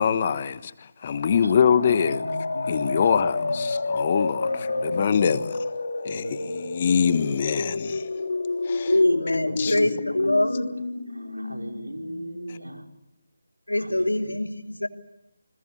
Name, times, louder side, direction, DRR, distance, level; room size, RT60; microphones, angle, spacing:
voice 1, 0.0-2.3 2.7-4.5 4.8-5.5 6.0-8.1 8.6-8.9 9.6-9.7, left 7 dB, 35° left, 1.4 m, -24 dB
sound 1, 1.0-12.7, left 3 dB, 65° left, 2.3 m, -30 dB
voice 2, 1.2-3.7 4.4-5.4 6.1-6.5 9.4-9.8 10.2-10.3 11.1-12.8 13.7-14.4, equal, 90° right, 5.1 m, -39 dB
voice 3, 8.8-10.7 13.7-14.9, left 1 dB, 85° left, 3.0 m, -23 dB
30.0 x 21.0 x 8.5 m
figure-of-eight pair, 155°, 0 cm